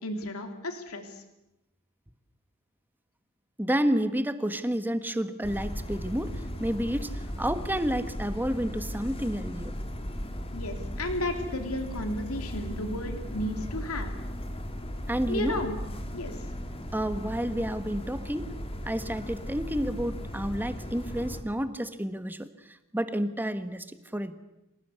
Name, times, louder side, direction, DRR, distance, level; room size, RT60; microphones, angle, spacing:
voice 1, 0.0-1.2 10.5-14.1 15.3-15.7 16.1-16.5, left 1 dB, 70° left, 5 dB, 3.3 m, -33 dB
voice 2, 3.6-9.7 11.4-11.5 15.1-15.6 16.9-18.5 18.8-24.3, equal, 10° right, 10 dB, 1.4 m, -30 dB
sound 1, 5.4-21.4, equal, 25° left, 2.4 m, -36 dB
26.5 x 19.0 x 8.3 m, 0.91 s
head